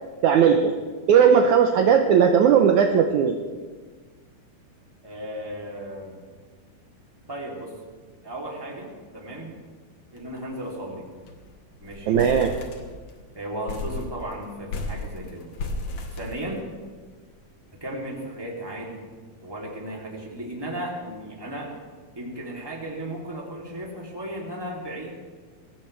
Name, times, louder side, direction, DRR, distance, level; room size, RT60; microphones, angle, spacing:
voice 1, 0.2-0.8 1.1-3.4 12.1-12.6, right 7 dB, 75° right, 4 dB, 1.8 m, -17 dB
voice 2, 5.0-6.2 7.3-7.8 8.2-9.6 10.1-11.1 11.8-12.2 13.3-15.5 16.1-16.7 17.8-19.1 19.4-21.7 22.2-25.1, right 1 dB, 5° right, -3 dB, 2.4 m, -35 dB
sound 1, 10.2-10.4 10.7-10.8 11.1-11.5 11.8-13.2 13.7-17.0, left 2 dB, 55° left, 2.4 m, -34 dB
22.5 x 17.5 x 3.4 m, 1.5 s
omnidirectional pair, 4.4 m